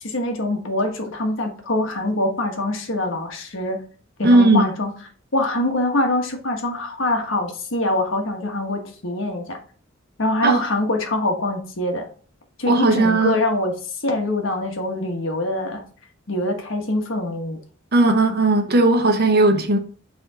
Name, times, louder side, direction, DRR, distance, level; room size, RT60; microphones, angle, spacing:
voice 1, 0.0-3.8 4.2-4.9 5.3-9.6 10.2-12.1 12.6-15.8 16.3-17.6, left 1 dB, 70° left, 1.4 m, -24 dB
voice 2, 4.2-4.6 10.4-10.6 12.7-13.3 17.9-19.8, right 2 dB, 50° right, 1.0 m, -16 dB
8.3 x 3.6 x 3.6 m
head